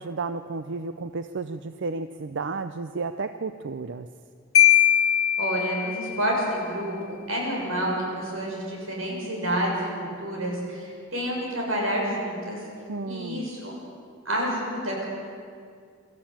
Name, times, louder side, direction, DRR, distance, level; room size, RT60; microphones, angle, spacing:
voice 1, 0.0-4.1 12.9-13.5, right 4 dB, 60° right, 10 dB, 0.6 m, -32 dB
Marimba xylophone, 4.5-6.3, left 11 dB, 80° left, 1.4 m, -20 dB
voice 2, 5.4-6.9 7.3-9.9 10.2-12.6 13.1-13.7 14.3-15.1, equal, 90° right, -2 dB, 6.9 m, -28 dB
25.0 x 13.5 x 8.9 m, 2.3 s
head